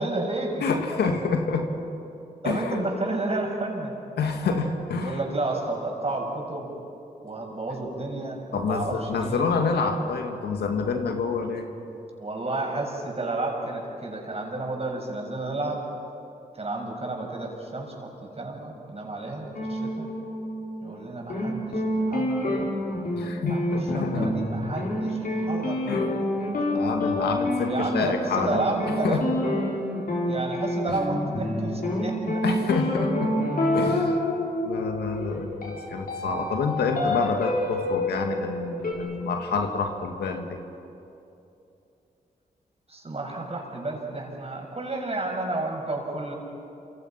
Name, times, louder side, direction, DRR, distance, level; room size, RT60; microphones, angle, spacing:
voice 1, 0.0-0.6 2.4-3.9 5.0-6.7 7.2-9.4 12.2-15.9 16.5-20.1 20.8-22.8 23.5-23.6 23.9-26.3 27.6-29.4 30.2-32.4 42.9-46.3, right 2 dB, 40° right, 1 dB, 6.7 m, -31 dB
voice 2, 0.6-1.7 2.4-2.8 4.2-5.2 8.5-11.7 23.1-24.3 25.9-26.1 26.7-28.7 29.0-29.2 30.9-31.0 32.4-33.3 33.7-34.2 34.6-40.6, left 4 dB, 85° left, 4 dB, 2.2 m, -27 dB
sound 1, 19.5-21.0 21.3-38.9, left 1 dB, 60° left, 6.1 m, -28 dB
28.0 x 26.0 x 5.9 m, 2.8 s
supercardioid pair, 50°, 16 cm